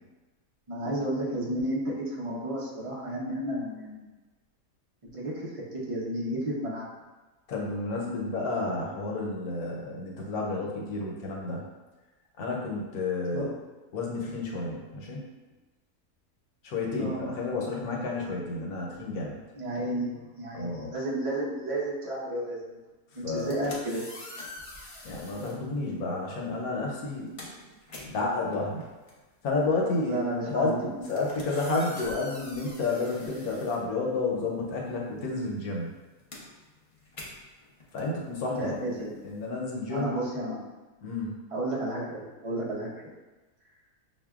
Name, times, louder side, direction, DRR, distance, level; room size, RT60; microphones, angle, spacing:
voice 1, 0.7-4.1 5.1-6.9 13.3-13.5 17.0-17.3 19.6-22.8 23.2-24.0 30.0-30.8 31.1-31.2 33.2-33.3 38.6-39.1 39.9-40.7 41.5-42.9, right 1 dB, 55° right, -5 dB, 0.3 m, -32 dB
voice 2, 7.5-11.7 12.4-13.5 13.9-15.2 16.6-19.4 20.5-20.9 23.2-23.7 25.0-27.5 28.0-28.9 29.4-30.2 30.5-30.7 31.1-35.9 37.9-40.1 41.0-41.3, left 3 dB, 70° left, -2 dB, 1.2 m, -31 dB
sound 1, 23.2-25.6 26.5-26.7 27.0-34.5 34.8-39.5, left 1 dB, 55° left, 0.3 m, -46 dB
6.3 x 2.2 x 2.3 m, 1.2 s
omnidirectional pair, 1.7 m